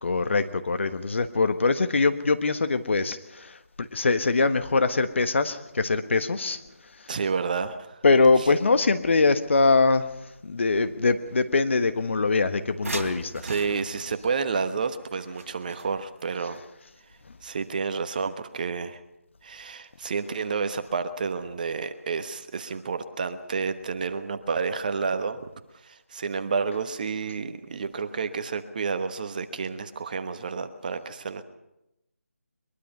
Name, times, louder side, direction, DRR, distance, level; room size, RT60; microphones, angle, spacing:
voice 1, 0.0-6.6 8.0-10.1 10.4-13.4, left 3 dB, 50° left, 10 dB, 1.3 m, -23 dB
voice 2, 7.1-8.0 8.4-8.5 13.4-16.6 17.4-19.0 19.4-25.5 25.7-31.4, right 5 dB, 35° right, 10 dB, 1.2 m, -30 dB
sound 1, 12.8-16.3 18.1-18.2 18.6-18.7, right 2 dB, 60° right, 3.8 m, -38 dB
22.0 x 22.0 x 5.5 m, 0.90 s
figure-of-eight pair, 160°, 8 cm